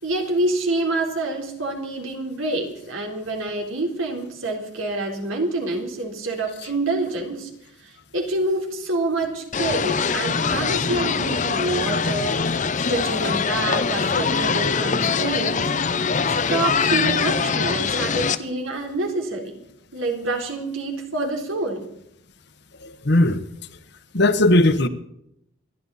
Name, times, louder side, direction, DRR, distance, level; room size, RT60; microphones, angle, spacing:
voice 1, 0.0-7.5 7.8-12.4 12.9-15.7 16.5-19.6 19.9-21.9, right 2 dB, 80° right, 1 dB, 3.8 m, -27 dB
sound 1, 9.5-18.4, left 5 dB, 35° left, 0.7 m, -23 dB
voice 2, 22.8-23.4 24.1-24.9, left 1 dB, 55° left, 10 dB, 1.2 m, -18 dB
28.5 x 11.0 x 4.2 m, 0.77 s
head